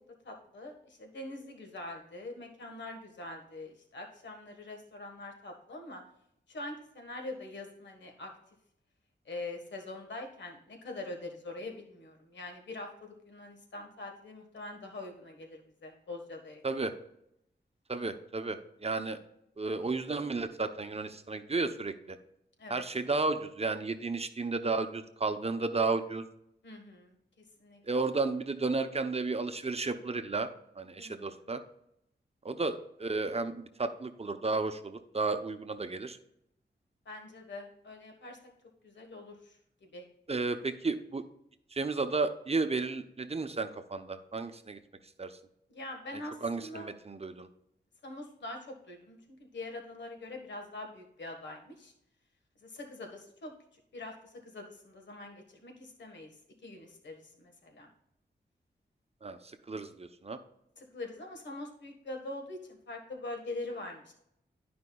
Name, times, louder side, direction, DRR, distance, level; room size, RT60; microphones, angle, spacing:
voice 1, 0.2-6.0 6.5-8.3 9.2-16.8 22.6-22.8 26.6-27.8 31.0-31.4 37.0-38.4 38.8-40.0 45.7-46.9 48.0-51.9 52.6-53.5 53.9-56.3 56.6-57.9 60.8-64.1, left 2 dB, 80° left, 3 dB, 1.5 m, -44 dB
voice 2, 17.9-19.2 19.6-22.2 22.7-26.2 27.9-30.5 30.8-31.6 32.4-36.2 40.3-41.2 41.7-44.8 45.2-45.3 46.4-47.5 59.2-59.4 59.7-60.4, right 3 dB, 35° right, 9 dB, 0.7 m, -33 dB
11.5 x 5.1 x 2.3 m, 0.77 s
cardioid pair, 60°, 18 cm